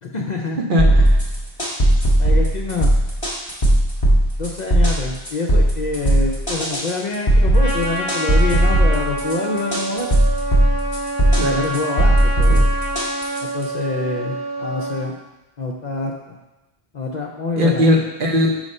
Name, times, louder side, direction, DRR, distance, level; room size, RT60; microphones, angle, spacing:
voice 1, 0.0-0.6 2.2-2.9 4.4-10.1 11.5-12.7 13.4-15.2 15.6-16.4 16.9-17.9, left 3 dB, 50° left, 0 dB, 0.6 m, -26 dB
voice 2, 0.7-1.2 11.4-11.7 17.5-18.5, left 1 dB, 50° right, 0 dB, 0.9 m, -18 dB
sound 1, 0.8-13.6, right 1 dB, 30° left, 1.7 m, -17 dB
Trumpet, 7.5-15.1, right 2 dB, 20° right, 0.9 m, -27 dB
6.4 x 3.2 x 5.3 m, 1.0 s
omnidirectional pair, 1.1 m